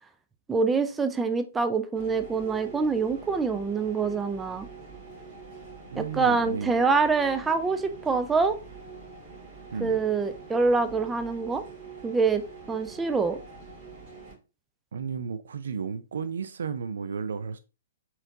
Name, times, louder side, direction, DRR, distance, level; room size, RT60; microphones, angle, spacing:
voice 1, 0.5-4.7 6.0-8.6 9.8-11.6 12.0-12.4 12.7-13.4, right 4 dB, 10° right, 0.5 m, -25 dB
sound 1, 2.0-14.3, right 4 dB, 40° right, 2.6 m, -45 dB
voice 2, 5.9-6.8 9.7-10.0 14.9-17.6, right 6 dB, 70° right, 0.4 m, -33 dB
4.2 x 4.0 x 2.7 m
hypercardioid pair, 120°, 0 cm